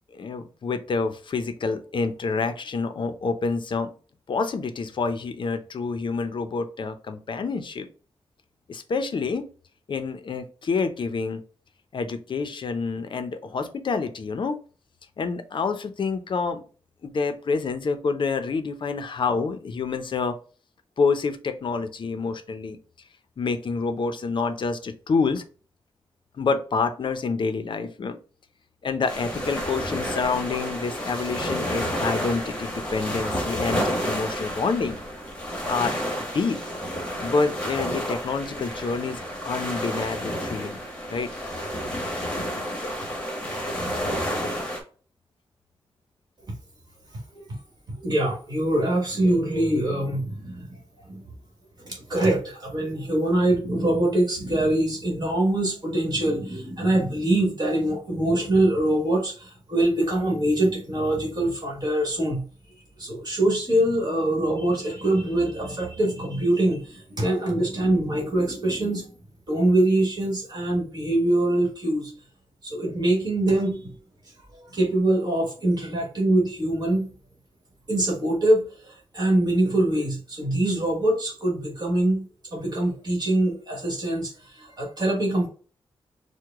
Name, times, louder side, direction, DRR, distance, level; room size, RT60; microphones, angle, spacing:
voice 1, 0.1-3.9 4.3-7.9 8.7-9.4 9.9-11.4 11.9-14.6 15.2-16.6 17.0-20.4 21.0-22.8 23.4-25.4 26.4-28.2 28.8-35.0 35.7-36.0 36.3-36.6 37.2-40.8 41.1-41.3, left 4 dB, 55° left, 9 dB, 0.6 m, -27 dB
sound 1, 29.1-44.8, equal, 10° left, 1.1 m, -30 dB
voice 2, 47.9-50.8 51.1-51.2 51.8-62.4 63.0-69.1 69.5-72.1 72.6-73.9 74.5-77.1 77.9-85.5, right 1 dB, 45° right, -1 dB, 1.5 m, -24 dB
4.7 x 2.1 x 3.5 m, 0.39 s
wide cardioid pair, 150°, 10 cm